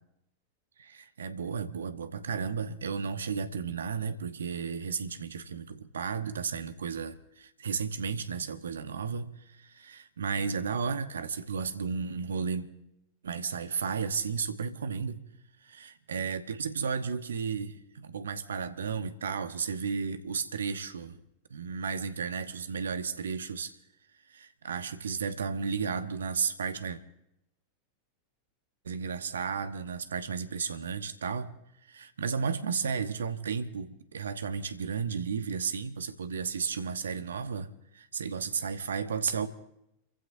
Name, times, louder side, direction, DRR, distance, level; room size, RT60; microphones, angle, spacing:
voice 1, 0.8-12.7 13.2-15.2 15.6-21.2 21.5-23.7 24.3-27.0 28.8-31.5 31.9-39.5, right 6 dB, 70° right, 10 dB, 1.2 m, -33 dB
29.5 x 15.5 x 2.7 m, 0.82 s
figure-of-eight pair, 90°, 0 cm